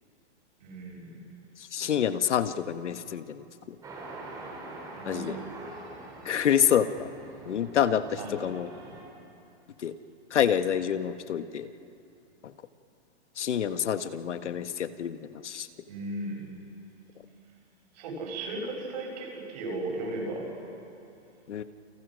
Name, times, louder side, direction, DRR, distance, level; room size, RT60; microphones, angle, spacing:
voice 1, 0.6-1.2 4.9-5.5 8.2-8.4 15.9-16.4 17.9-20.5, right 2 dB, 35° right, 0 dB, 7.1 m, -36 dB
voice 2, 1.6-3.7 5.0-5.4 6.2-7.1 7.4-8.7 9.8-9.9 10.3-11.7 12.4-12.5 13.4-15.7 21.5-21.6, left 9 dB, 75° left, 10 dB, 1.5 m, -27 dB
sound 1, 3.8-9.0, right 2 dB, 10° right, 3.1 m, -44 dB
30.0 x 29.5 x 6.4 m, 2.7 s
hypercardioid pair, 175°, 35 cm